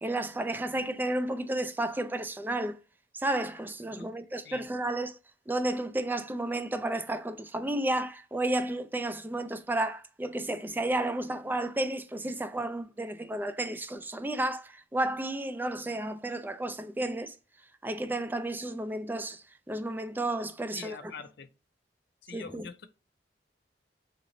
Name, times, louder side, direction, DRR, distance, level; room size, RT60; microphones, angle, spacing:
voice 1, 0.0-2.8 3.1-5.1 5.5-17.3 17.8-21.0 22.3-22.7, right 1 dB, 10° right, 0.3 m, -32 dB
voice 2, 3.9-4.2 4.4-4.7 20.7-21.5 22.2-22.9, left 6 dB, 65° left, 0.5 m, -44 dB
4.1 x 2.9 x 2.6 m
head